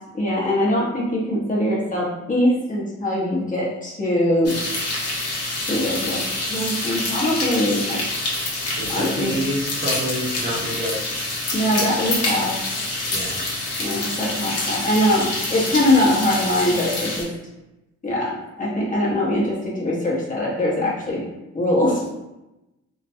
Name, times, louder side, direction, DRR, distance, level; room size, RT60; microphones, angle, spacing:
voice 1, 0.1-4.6 5.7-6.2 6.5-8.0 8.9-9.3 11.5-12.5 13.8-17.3 18.0-21.2 21.5-22.1, left 1 dB, 25° left, -6 dB, 0.8 m, -22 dB
sound 1, 4.4-17.2, left 2 dB, 55° left, 0.8 m, -27 dB
voice 2, 8.8-11.1 13.1-13.4, right 1 dB, 35° right, -5 dB, 0.7 m, -28 dB
2.3 x 2.1 x 2.7 m, 0.96 s
cardioid pair, 90°, 30 cm